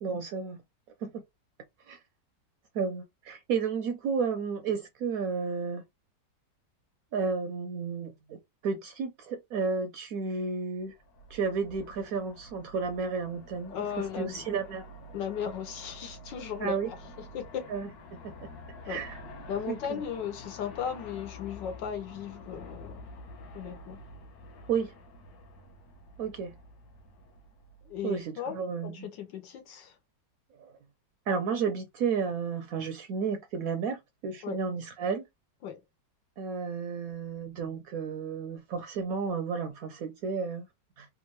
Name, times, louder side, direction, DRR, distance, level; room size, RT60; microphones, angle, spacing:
voice 1, 0.0-0.6 1.0-1.2 1.9-2.0 2.7-5.8 7.1-10.9 11.3-13.9 14.2-14.8 16.6-16.9 17.7-18.5 18.8-19.2 19.7-20.0 24.7-24.9 26.2-26.6 28.0-29.1 30.6-30.7 31.3-35.2 36.4-40.7 41.0-41.1, right 5 dB, 70° right, 0.8 m, -32 dB
Aircraft, 10.9-28.2, left 2 dB, 65° left, 1.2 m, -48 dB
voice 2, 13.7-14.4 15.1-17.0 17.3-17.7 18.9-19.0 19.5-23.1 23.5-24.0 27.8-28.6 28.8-29.9 34.4-34.6 35.6-35.8, left 8 dB, 80° left, 1.5 m, -36 dB
3.5 x 2.4 x 3.0 m
omnidirectional pair, 1.9 m